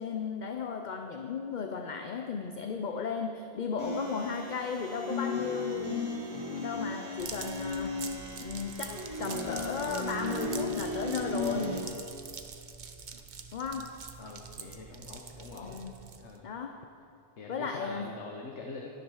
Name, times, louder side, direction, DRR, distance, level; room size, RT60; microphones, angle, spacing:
voice 1, 0.0-8.0 8.4-11.8 13.5-14.0 15.6-15.9 16.4-16.9 17.5-18.2, left 5 dB, 50° left, 5 dB, 0.7 m, -35 dB
sound 1, 3.8-11.8, left 2 dB, 65° right, 2.6 m, -35 dB
sound 2, 7.2-16.4, right 5 dB, 45° right, 0.9 m, -45 dB
voice 2, 14.2-15.8 16.2-16.5 17.4-18.9, left 3 dB, 85° left, 0 dB, 1.4 m, -44 dB
12.5 x 10.5 x 6.4 m, 2.6 s
omnidirectional pair, 1.2 m